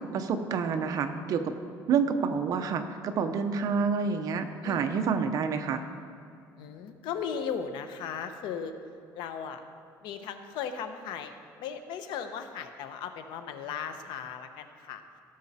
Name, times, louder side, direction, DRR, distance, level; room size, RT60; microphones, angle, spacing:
voice 1, 0.0-1.4 1.9-5.8, right 6 dB, 50° right, 7 dB, 0.8 m, -28 dB
voice 2, 4.6-5.0 6.6-8.7 9.1-9.6 10.0-15.0, left 7 dB, 75° left, 8 dB, 0.9 m, -37 dB
16.5 x 6.6 x 4.2 m, 2.4 s
cardioid pair, 150°, 8 cm